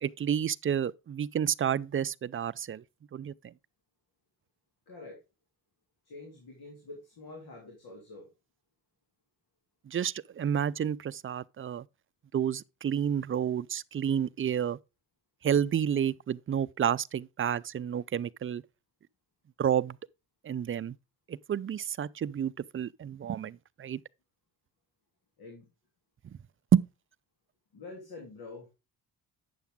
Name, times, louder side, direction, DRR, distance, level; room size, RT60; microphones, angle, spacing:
voice 1, 0.0-2.8 3.1-3.5 9.9-11.8 12.3-14.8 15.4-18.6 19.6-20.0 20.4-21.0 21.3-24.0 26.7-26.9, right 9 dB, 35° right, 0.5 m, -30 dB
voice 2, 4.9-5.2 6.0-8.3 25.4-25.6 27.7-28.7, left 3 dB, 75° left, 3.2 m, -46 dB
9.4 x 7.0 x 3.6 m
cardioid pair, 65°, 37 cm